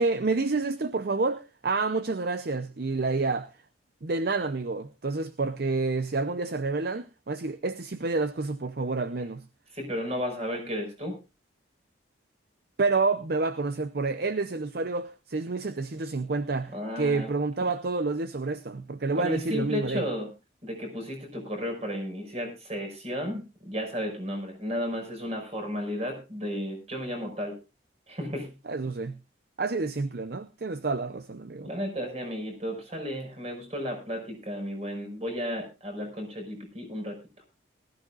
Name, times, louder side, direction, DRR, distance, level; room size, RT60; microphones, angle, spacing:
voice 1, 0.0-3.5 4.0-9.4 12.8-20.0 28.7-29.2 29.6-31.7, right 3 dB, 55° right, 0.7 m, -29 dB
voice 2, 9.7-11.2 16.7-17.3 19.1-20.3 20.6-27.6 28.1-28.5 31.6-37.2, equal, 35° right, 5.5 m, -33 dB
20.0 x 14.0 x 2.4 m
head